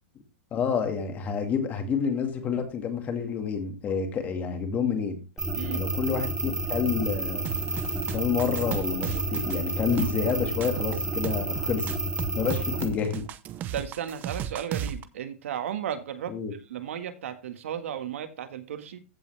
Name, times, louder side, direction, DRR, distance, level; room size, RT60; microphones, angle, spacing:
voice 1, 0.5-5.2 5.7-7.5 8.1-11.9 12.3-13.2 16.3-16.5, left 6 dB, 20° left, 2.2 m, -28 dB
sound 1, 5.4-12.9, right 2 dB, 5° right, 1.9 m, -30 dB
voice 2, 5.5-5.9 12.4-12.5 13.7-16.3 16.7-19.0, right 9 dB, 75° right, 1.7 m, -34 dB
sound 2, 7.4-15.0, right 10 dB, 25° right, 0.8 m, -36 dB
15.5 x 5.5 x 3.3 m
supercardioid pair, 155°, 7 cm